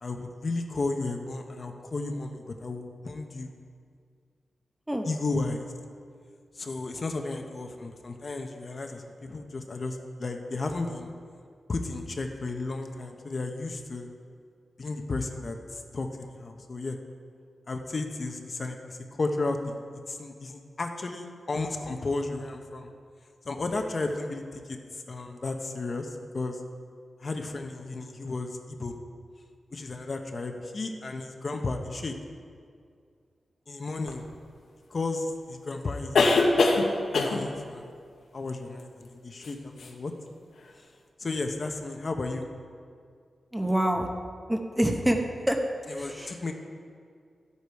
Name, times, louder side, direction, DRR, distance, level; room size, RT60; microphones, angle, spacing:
voice 1, 0.0-3.5 5.0-5.7 6.5-11.1 11.7-14.1 14.8-17.0 17.7-22.9 23.4-26.6 27.2-28.9 29.7-32.1 33.7-34.2 34.9-36.5 37.1-37.9 38.3-40.1 41.2-42.5 45.9-46.5, left 3 dB, 40° left, 4 dB, 0.9 m, -33 dB
sound 1, 34.1-34.2 36.1-36.9 37.1-37.5 39.4-39.5 39.8-39.9, left 3 dB, 85° left, 1.2 m, -22 dB
voice 2, 43.5-44.1 44.5-45.2 45.5-45.6 46.0-46.3, right 1 dB, 5° right, 3 dB, 0.9 m, -26 dB
13.0 x 8.4 x 4.7 m, 2.2 s
wide cardioid pair, 130°, 0 cm